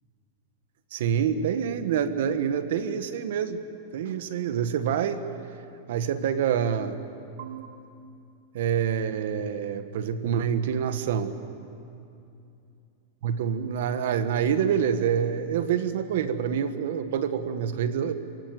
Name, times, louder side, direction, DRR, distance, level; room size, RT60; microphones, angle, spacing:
voice 1, 0.9-3.6 3.9-5.3 5.9-7.0 7.4-7.8 8.5-11.3 13.2-18.1, right 8 dB, 70° right, 10 dB, 1.5 m, -27 dB
27.0 x 16.0 x 9.3 m, 2.6 s
supercardioid pair, 155°, 0 cm